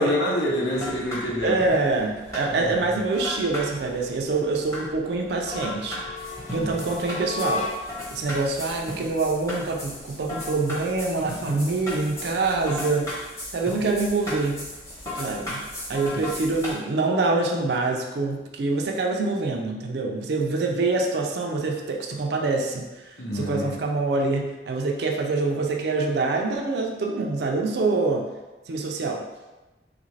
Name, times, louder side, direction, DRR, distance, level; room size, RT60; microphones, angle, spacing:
voice 1, 0.0-1.6 2.5-3.0 6.5-6.9 16.1-16.2 23.2-23.7, left 1 dB, 85° left, -3 dB, 0.9 m, -27 dB
sound 1, 0.7-16.7, left 1 dB, 15° left, 0.9 m, -36 dB
voice 2, 1.4-6.0 6.5-7.7 8.1-13.1 13.5-14.6 15.2-28.3 28.7-29.2, right 3 dB, 65° right, 2 dB, 0.4 m, -25 dB
sound 2, 5.4-8.1, left 3 dB, 40° left, 0.4 m, -34 dB
3.3 x 2.5 x 3.1 m, 1.1 s
head